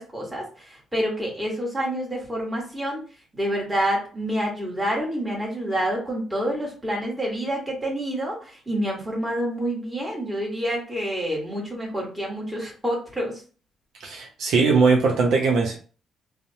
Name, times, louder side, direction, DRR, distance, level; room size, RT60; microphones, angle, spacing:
voice 1, 0.0-3.0 3.3-13.4, equal, 15° right, -3 dB, 1.4 m, -28 dB
voice 2, 14.0-15.8, right 4 dB, 75° right, 0 dB, 0.6 m, -20 dB
3.1 x 2.0 x 2.7 m, 0.38 s
cardioid pair, 90°, 0 cm